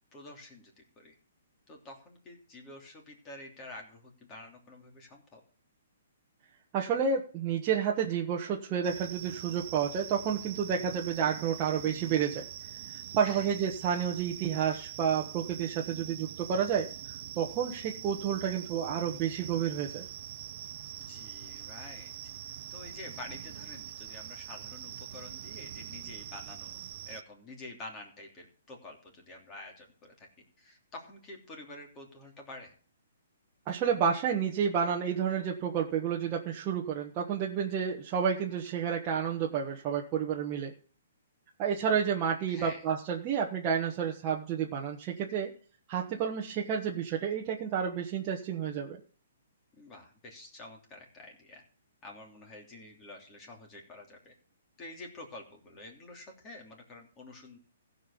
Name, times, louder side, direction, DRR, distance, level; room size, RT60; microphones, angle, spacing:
voice 1, 0.1-1.1 1.7-5.4 13.3-13.5 21.0-22.1 22.7-26.8 27.1-30.3 30.6-32.7 42.5-42.8 49.7-51.6 52.0-54.3 54.8-57.6, left 2 dB, 20° left, 1 dB, 3.0 m, -48 dB
voice 2, 6.7-12.5 13.1-16.9 17.4-20.1 33.7-40.7 41.6-45.5 45.9-49.0, right 7 dB, 25° right, -1 dB, 1.2 m, -30 dB
sound 1, 8.8-27.2, right 11 dB, 45° right, 0.7 m, -44 dB
15.5 x 5.4 x 6.9 m, 0.43 s
hypercardioid pair, 160°, 0 cm